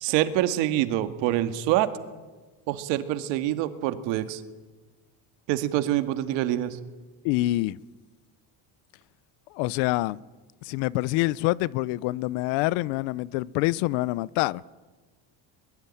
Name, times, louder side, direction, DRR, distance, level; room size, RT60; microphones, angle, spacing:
voice 1, 0.0-1.9 2.7-4.4 5.5-6.8, right 13 dB, 75° right, 2.1 m, -25 dB
voice 2, 7.2-7.8 9.5-10.2 10.6-14.6, left 18 dB, 90° left, 0.8 m, -26 dB
22.5 x 22.0 x 10.0 m
cardioid pair, 175°, 45 cm